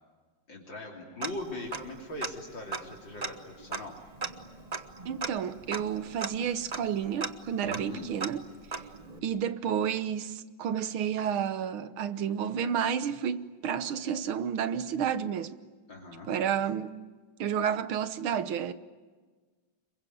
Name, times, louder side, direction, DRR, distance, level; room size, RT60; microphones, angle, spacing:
voice 1, 0.5-4.0 7.6-8.1 8.9-9.3 15.9-16.3, left 2 dB, 60° left, 3.9 m, -41 dB
Tick-tock, 1.2-2.3 2.7-9.2, right 4 dB, 30° right, 0.7 m, -38 dB
voice 2, 5.1-8.4 9.2-15.6 16.3-17.0 17.4-18.7, right 8 dB, 75° right, 1.9 m, -31 dB
27.5 x 23.0 x 9.4 m
omnidirectional pair, 2.3 m